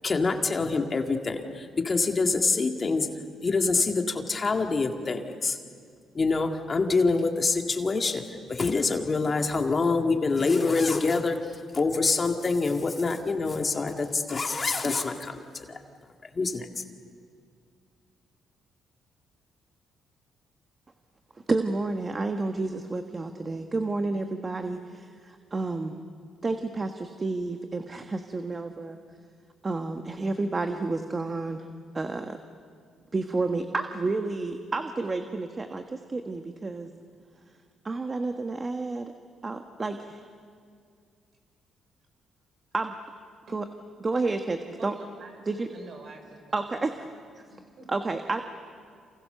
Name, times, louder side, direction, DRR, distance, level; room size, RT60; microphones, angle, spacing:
voice 1, 0.0-3.1 3.4-5.6 6.1-15.8 16.3-16.7, left 4 dB, 35° left, 4 dB, 2.0 m, -26 dB
voice 2, 21.5-26.0 26.4-29.0 29.6-31.7 31.9-32.4 33.1-36.9 37.8-39.1 39.4-40.2 42.7-43.0 43.5-43.6 44.0-44.9 45.5-45.7 46.5-47.0 47.9-48.4, right 3 dB, 30° right, 6 dB, 1.5 m, -30 dB
voice 3, 44.8-45.4 45.7-46.4 47.0-47.2 47.5-47.9, right 3 dB, 60° right, 4 dB, 5.9 m, -47 dB
29.0 x 28.0 x 6.8 m, 2.2 s
cardioid pair, 90°, 0 cm